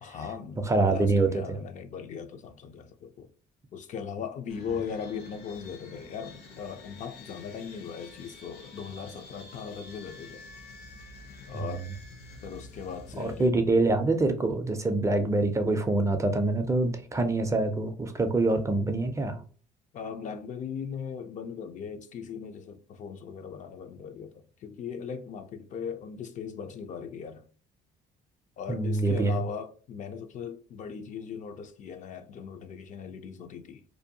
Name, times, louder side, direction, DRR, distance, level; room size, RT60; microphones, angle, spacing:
voice 1, 0.0-3.3 3.7-10.4 11.5-11.9 12.4-13.5 19.9-27.4 28.6-33.8, left 6 dB, 50° left, 0.4 m, -39 dB
voice 2, 0.7-1.6 13.2-19.4 28.7-29.4, right 2 dB, 20° right, 0.4 m, -25 dB
sound 1, 4.5-13.5, left 3 dB, 70° left, 0.8 m, -48 dB
2.6 x 2.2 x 2.7 m
cardioid pair, 110°, 17 cm